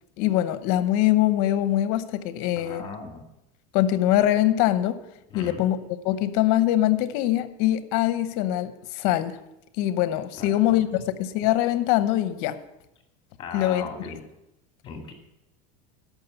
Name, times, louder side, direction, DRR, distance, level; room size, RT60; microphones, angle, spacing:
voice 1, 0.2-2.8 3.7-5.0 5.3-5.8 6.0-9.4 9.8-12.6 13.5-14.2, left 13 dB, 55° left, 0.9 m, -23 dB
voice 2, 2.5-3.2 5.3-5.6 10.4-10.8 13.4-14.2 14.8-15.1, left 5 dB, 25° left, 2.1 m, -38 dB
13.0 x 5.9 x 6.9 m
supercardioid pair, 150°, 19 cm